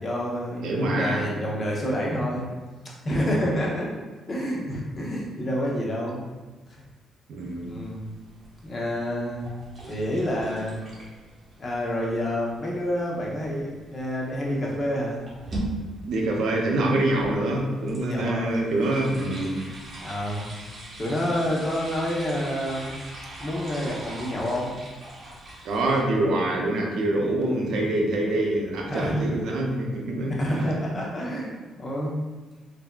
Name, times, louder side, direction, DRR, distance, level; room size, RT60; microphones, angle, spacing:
voice 1, 0.0-2.5 3.0-3.9 4.3-6.2 6.7-6.8 7.7-8.0 8.6-9.5 9.9-10.7 11.6-15.2 18.0-18.5 20.0-20.5 21.0-22.9 23.4-24.8 27.7-27.9 28.9-29.3 30.3-31.5 31.8-32.2, equal, 35° left, -3 dB, 0.8 m, -28 dB
voice 2, 0.6-1.2 7.3-7.7 16.1-19.5 25.6-30.8, right 1 dB, 75° right, 0 dB, 0.5 m, -25 dB
sound 1, 7.4-26.0, right 1 dB, 40° right, 1.0 m, -41 dB
3.3 x 2.6 x 2.2 m, 1.3 s
cardioid pair, 90°, 0 cm